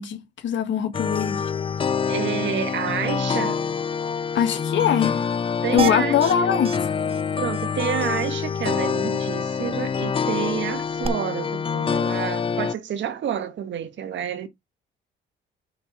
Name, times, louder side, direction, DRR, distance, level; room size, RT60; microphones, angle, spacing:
voice 1, 0.0-1.4 4.3-5.2 5.7-6.9, left 8 dB, 70° left, 1.8 m, -22 dB
sound 1, 0.9-12.7, left 6 dB, 25° left, 0.4 m, -26 dB
voice 2, 2.1-3.6 5.6-6.5 7.4-14.5, right 9 dB, 70° right, 1.6 m, -29 dB
sound 2, 5.8-6.3 6.6-6.8 7.1-7.2 7.5-7.6 11.0-11.1, right 4 dB, 30° right, 0.9 m, -27 dB
6.8 x 5.1 x 6.0 m
cardioid pair, 90°, 20 cm